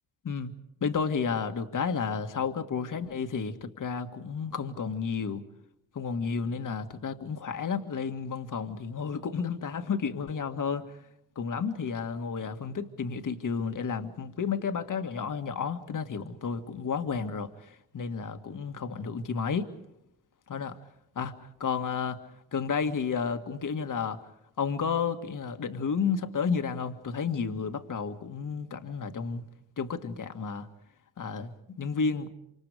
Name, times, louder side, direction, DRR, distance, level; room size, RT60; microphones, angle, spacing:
voice 1, 0.8-5.4 5.9-11.0 11.4-19.7 20.5-20.7 21.2-22.2 22.5-24.2 24.6-29.4 29.8-30.7 31.2-32.3, left 6 dB, 50° left, 1.9 m, -32 dB
27.0 x 26.0 x 5.0 m
supercardioid pair, 55°, 42 cm